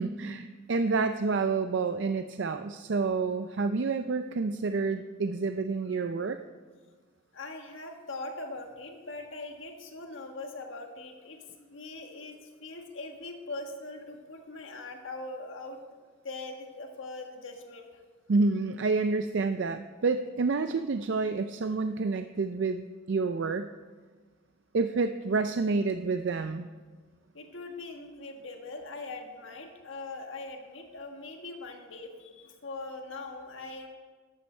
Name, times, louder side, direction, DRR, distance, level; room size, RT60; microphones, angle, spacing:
voice 1, 0.0-6.4 18.3-23.7 24.7-26.7, right 4 dB, 60° right, 9 dB, 0.4 m, -29 dB
voice 2, 7.3-15.8 16.2-18.0 27.3-33.9, left 2 dB, 70° left, 3 dB, 1.5 m, -41 dB
14.0 x 11.5 x 4.4 m, 1.5 s
head